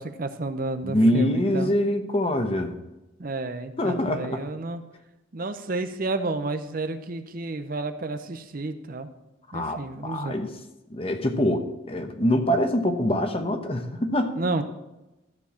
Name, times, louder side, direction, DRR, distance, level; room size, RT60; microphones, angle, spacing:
voice 1, 0.0-1.7 3.2-4.8 5.3-9.1 9.5-10.4 14.3-14.6, right 2 dB, 45° right, 9 dB, 0.7 m, -31 dB
voice 2, 0.8-2.8 3.8-4.5 9.5-10.5 10.9-14.4, left 1 dB, 30° left, 6 dB, 0.9 m, -24 dB
13.0 x 4.6 x 7.0 m, 0.99 s
head